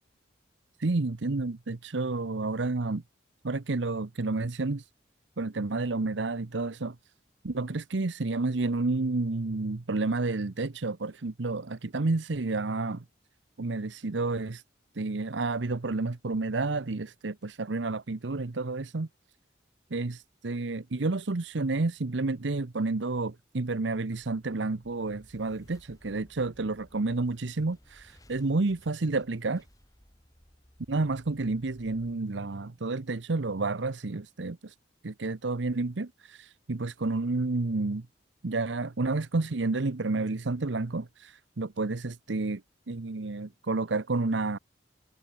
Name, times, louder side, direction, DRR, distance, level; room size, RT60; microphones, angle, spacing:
voice 1, 0.8-3.0 3.4-4.9 5.4-7.0 7.4-13.0 13.6-14.6 14.9-19.1 19.9-29.6 30.9-34.7 35.0-38.1 38.4-42.6 42.9-44.6, right 3 dB, 80° right, 0.9 m, -30 dB
sound 1, 24.6-33.2, equal, 20° left, 3.1 m, -59 dB
head